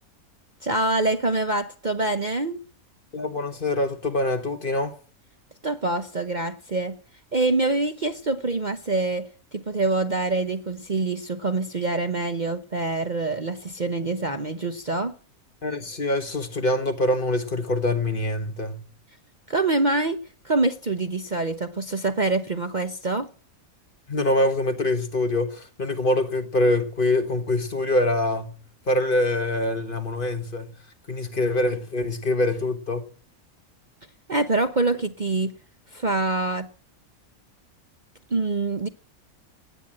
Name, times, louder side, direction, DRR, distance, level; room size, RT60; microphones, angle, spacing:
voice 1, 0.6-2.6 5.6-7.0 7.3-9.3 9.5-15.1 19.5-20.2 20.4-23.3 34.3-35.5 35.9-36.7 38.3-38.9, right 2 dB, 35° right, 1.0 m, -25 dB
voice 2, 3.1-4.9 15.6-18.9 24.1-28.6 28.9-30.8 31.1-33.0, left 1 dB, 35° left, 1.6 m, -24 dB
17.5 x 9.2 x 8.8 m
omnidirectional pair, 1.5 m